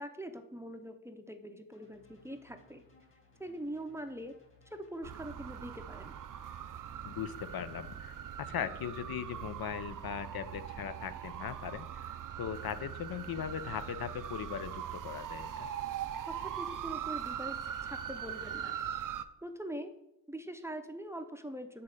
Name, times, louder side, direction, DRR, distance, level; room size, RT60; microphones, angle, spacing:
voice 1, 0.0-2.8 3.4-4.3 4.7-6.2 16.3-17.6 17.8-18.8 19.4-19.9 20.3-21.8, right 1 dB, 5° right, 6 dB, 0.5 m, -43 dB
sound 1, 1.7-8.6, left 1 dB, 35° left, 1.8 m, -64 dB
sound 2, 5.0-19.3, right 9 dB, 55° right, 0.5 m, -41 dB
voice 2, 7.0-8.1 8.4-15.7, left 9 dB, 70° left, 12 dB, 0.6 m, -39 dB
8.6 x 4.2 x 6.4 m, 0.84 s
wide cardioid pair, 175°, 38 cm